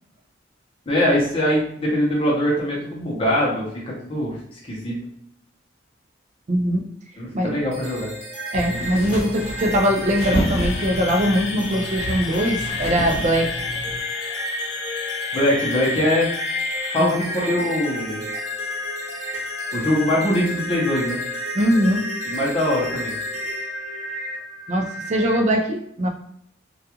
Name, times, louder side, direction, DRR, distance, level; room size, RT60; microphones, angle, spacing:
voice 1, 0.9-3.7 4.0-4.4 4.6-4.9 7.2-8.1 15.3-16.3 16.9-18.2 19.7-21.2 22.3-23.1, left 1 dB, 30° left, -4 dB, 0.7 m, -22 dB
voice 2, 6.5-6.8 7.3-7.5 8.5-13.5 17.0-17.1 21.5-22.0 24.7-26.1, equal, 35° right, 3 dB, 0.4 m, -21 dB
sound 1, 7.7-25.4, left 1 dB, 65° right, 0.8 m, -31 dB
sound 2, 8.5-14.0, equal, 55° left, 1.1 m, -29 dB
sound 3, 10.2-17.1, left 7 dB, 70° left, 0.3 m, -34 dB
2.3 x 2.3 x 2.9 m, 0.70 s
head